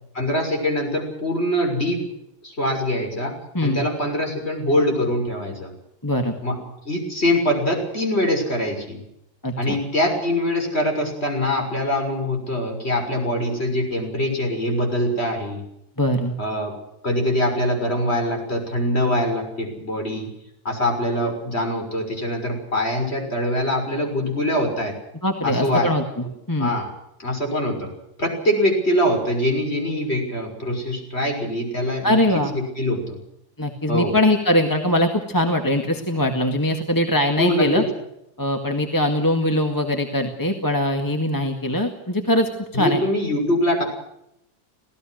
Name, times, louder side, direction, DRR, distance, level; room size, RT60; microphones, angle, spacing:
voice 1, 0.1-2.0 2.4-5.7 6.4-6.6 6.8-9.0 9.6-15.6 16.4-16.8 17.0-20.3 20.6-24.9 25.4-25.9 26.6-26.9 27.2-27.9 28.2-33.2 33.9-34.2 37.4-37.9 42.7-43.8, left 1 dB, 30° left, 3 dB, 6.6 m, -23 dB
voice 2, 6.0-6.4 9.4-9.8 16.0-16.4 25.2-26.7 32.0-32.5 33.6-37.8 38.4-43.0, left 1 dB, 10° left, 4 dB, 1.8 m, -22 dB
26.5 x 18.0 x 6.4 m, 0.80 s
omnidirectional pair, 2.0 m